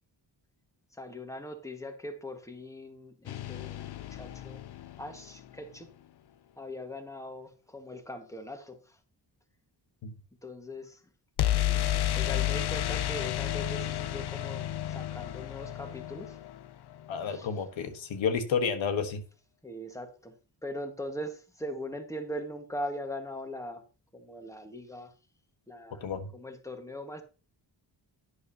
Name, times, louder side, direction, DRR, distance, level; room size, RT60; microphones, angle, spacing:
voice 1, 0.9-4.6 5.0-5.9 6.6-9.0 10.4-11.0 11.4-16.4 17.3-17.5 19.6-20.3 20.6-23.8 24.1-25.1 25.7-26.0 26.3-27.2, left 1 dB, 5° left, 1.6 m, -41 dB
sound 1, 3.3-5.3 11.4-17.2, left 13 dB, 60° left, 0.7 m, -31 dB
voice 2, 17.1-19.2 26.0-26.3, left 6 dB, 85° left, 1.5 m, -30 dB
11.0 x 9.8 x 2.9 m
wide cardioid pair, 110°, 45 cm